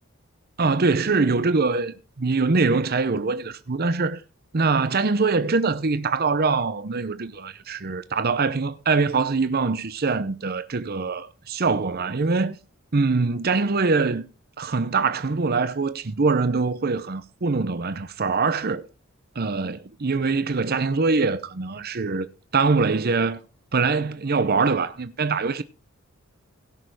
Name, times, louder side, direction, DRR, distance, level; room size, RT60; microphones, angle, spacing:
voice 1, 0.6-4.2 4.5-12.6 12.9-14.3 14.6-18.9 19.4-22.3 22.5-23.4 23.7-25.6, right 4 dB, 45° right, 0.7 m, -23 dB
17.0 x 6.7 x 4.8 m
head